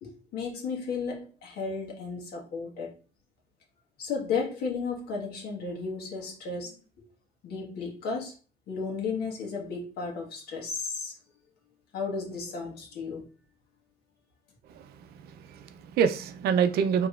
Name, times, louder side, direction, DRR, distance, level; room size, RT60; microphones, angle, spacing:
voice 1, 0.0-2.9 4.0-6.8 7.4-8.3 8.7-11.1 11.9-13.3, left 5 dB, 70° left, 1.4 m, -34 dB
voice 2, 14.7-17.1, right 7 dB, 70° right, 0.5 m, -27 dB
4.8 x 3.1 x 2.4 m
cardioid pair, 110°, 17 cm